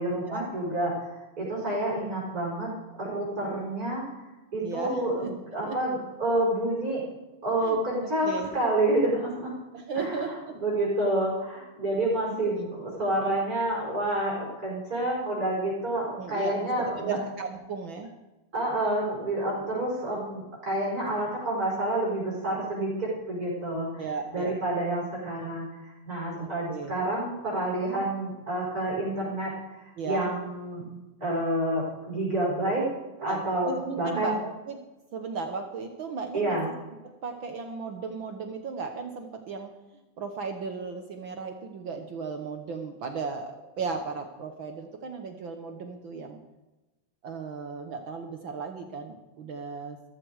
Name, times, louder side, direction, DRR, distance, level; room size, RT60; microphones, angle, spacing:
voice 1, 0.0-4.0 4.5-7.0 7.4-9.5 9.9-17.2 18.5-24.1 24.3-30.8 31.2-32.9 33.2-34.4 36.3-36.6, right 1 dB, 25° right, -5 dB, 5.1 m, -29 dB
voice 2, 4.6-5.3 5.6-5.8 7.6-7.8 8.2-8.5 9.7-10.5 12.1-12.2 12.5-12.7 16.1-18.1 23.9-24.5 26.4-27.0 30.0-30.3 33.2-34.8 35.1-36.7 37.2-39.7 40.2-46.4 47.2-50.0, right 4 dB, 70° right, 5 dB, 1.2 m, -35 dB
14.0 x 14.0 x 4.7 m, 1.1 s
omnidirectional pair, 3.6 m